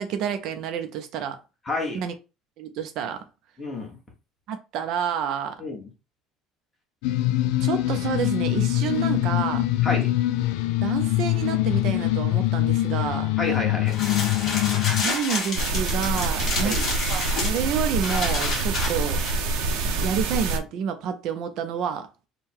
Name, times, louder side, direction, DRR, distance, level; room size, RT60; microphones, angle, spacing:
voice 1, 0.0-1.4 1.9-2.1 2.6-3.2 4.5-5.6 7.6-9.6 10.8-13.3 15.0-16.7 17.1-19.2 20.0-22.1, right 8 dB, 55° right, 0.5 m, -29 dB
voice 2, 1.7-2.0 3.6-4.0 5.6-5.9 9.8-10.1 13.4-13.9 16.6-16.9, left 2 dB, 15° left, 1.3 m, -29 dB
sound 1, 7.0-15.0, left 16 dB, 85° left, 0.3 m, -23 dB
sound 2, 13.9-19.3, left 3 dB, 35° left, 1.4 m, -30 dB
sound 3, 15.6-20.6, right 3 dB, 80° right, 0.8 m, -26 dB
3.6 x 2.2 x 4.4 m
cardioid pair, 165°, 0 cm